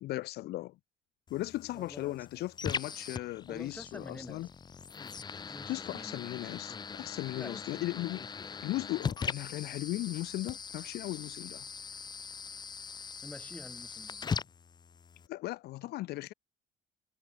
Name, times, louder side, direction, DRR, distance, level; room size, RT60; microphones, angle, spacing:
voice 1, 0.0-0.8 1.3-4.5 5.5-11.6 15.3-16.3, left 17 dB, 70° left, 0.6 m, -37 dB
sound 1, 1.3-15.3, left 6 dB, 25° left, 0.6 m, -41 dB
voice 2, 1.7-2.5 3.5-4.4 5.5-6.3 7.3-7.7 13.2-14.4, left 1 dB, 10° left, 7.3 m, -48 dB
cardioid pair, 110°, 17 cm